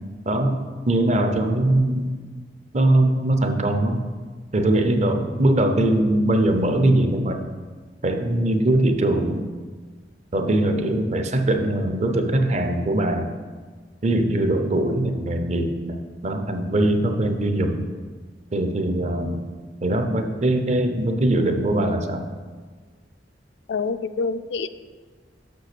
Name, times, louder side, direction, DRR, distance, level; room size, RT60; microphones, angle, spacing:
voice 1, 0.3-2.0 2.7-4.0 4.5-7.4 8.0-9.4 10.3-13.3 14.0-17.9 18.5-19.4 19.8-22.3, right 1 dB, 40° right, 6 dB, 0.6 m, -21 dB
voice 2, 23.7-24.8, left 4 dB, 65° left, 11 dB, 0.4 m, -27 dB
6.4 x 5.3 x 6.1 m, 1.5 s
head